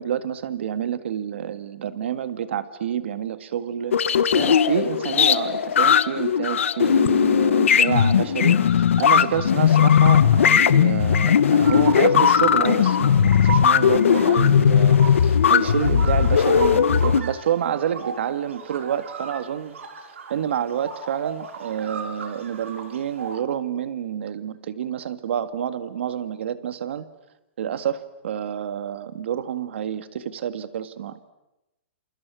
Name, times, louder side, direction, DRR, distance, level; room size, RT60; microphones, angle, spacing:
voice 1, 0.0-19.8 20.3-27.1 27.6-31.3, right 9 dB, 65° right, 11 dB, 1.9 m, -28 dB
sound 1, 3.9-17.2, left 8 dB, 85° left, 1.2 m, -18 dB
sound 2, 11.6-23.4, right 5 dB, 80° right, 4.9 m, -36 dB
28.5 x 28.0 x 6.3 m, 0.94 s
hypercardioid pair, 165°, 7 cm